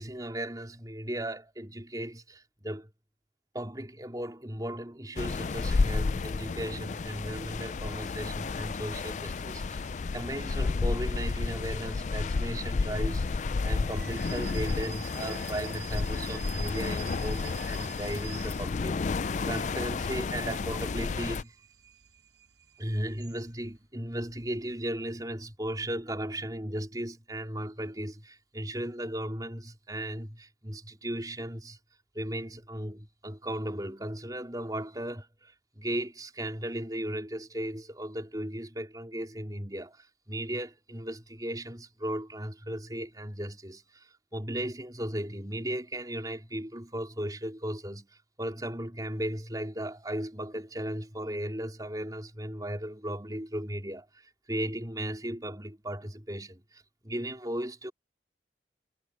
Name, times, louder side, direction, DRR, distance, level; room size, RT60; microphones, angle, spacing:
voice 1, 0.0-2.9 3.5-21.6 22.8-31.8 32.1-48.1 48.4-54.1 54.5-57.9, right 1 dB, 20° right, 4.0 m, -36 dB
sound 1, 5.2-21.4, left 4 dB, 40° left, 0.4 m, -31 dB
sound 2, 13.8-19.1 19.5-23.8, right 11 dB, 80° right, 5.1 m, -49 dB
head